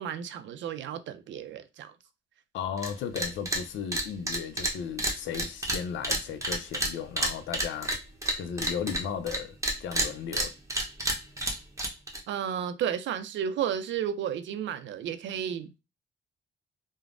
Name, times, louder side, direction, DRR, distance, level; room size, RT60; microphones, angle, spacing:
voice 1, 0.0-1.9 12.3-15.7, right 9 dB, 70° right, 0.4 m, -32 dB
voice 2, 2.5-8.0 8.4-9.6 9.8-10.5, left 7 dB, 75° left, 0.4 m, -35 dB
sound 1, 2.8-2.9 3.2-3.6 3.9-9.4 9.6-12.2, right 1 dB, 15° right, 0.8 m, -29 dB
3.1 x 2.0 x 2.4 m
cardioid pair, 70°, 20 cm